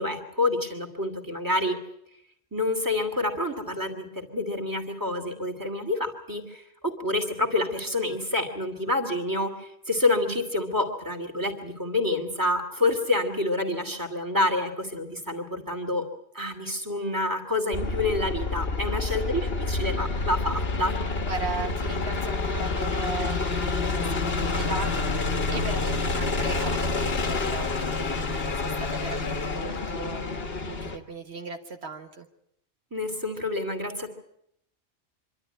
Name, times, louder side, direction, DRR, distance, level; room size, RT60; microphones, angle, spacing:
voice 1, 0.0-1.8 2.5-16.0 16.3-21.0 32.9-34.1, left 2 dB, 15° right, 4 dB, 2.7 m, -28 dB
sound 1, 17.7-31.0, left 3 dB, 60° left, 1.8 m, -28 dB
voice 2, 18.9-19.9 21.2-32.3, right 4 dB, 70° right, 4 dB, 1.7 m, -38 dB
25.5 x 12.5 x 10.0 m, 0.74 s
omnidirectional pair, 1.1 m